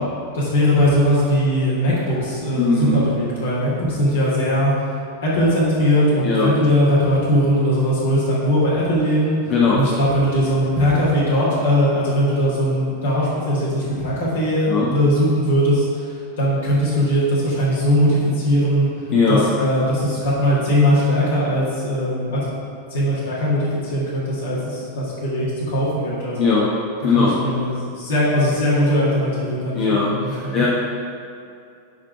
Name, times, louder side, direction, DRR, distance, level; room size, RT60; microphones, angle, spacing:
voice 1, 0.3-4.7 5.2-9.4 9.7-16.1 16.4-18.9 19.3-22.5 22.9-26.5 27.1-30.7, equal, 60° left, -7 dB, 1.9 m, -20 dB
voice 2, 2.6-3.0 6.2-6.5 9.5-9.8 14.7-14.9 19.1-19.4 26.4-26.7 27.0-27.4 29.7-30.7, left 4 dB, 40° left, -6 dB, 1.1 m, -19 dB
10.5 x 3.7 x 4.7 m, 2.5 s
figure-of-eight pair, 90°, 0 cm